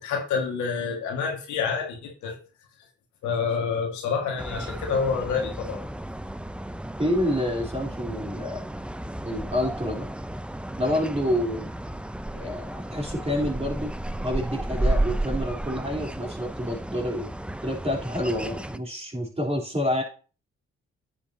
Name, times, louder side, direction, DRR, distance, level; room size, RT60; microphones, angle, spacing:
voice 1, 0.0-2.4 3.2-5.8, left 5 dB, 80° left, 2 dB, 1.8 m, -28 dB
sound 1, 4.4-18.8, right 1 dB, 5° right, 0.6 m, -33 dB
voice 2, 7.0-8.7 9.2-10.1 10.8-11.7 12.3-13.9 14.2-17.3 17.6-20.0, left 1 dB, 20° right, -1 dB, 3.6 m, -28 dB
9.8 x 7.4 x 2.8 m, 0.37 s
supercardioid pair, 45°, 29 cm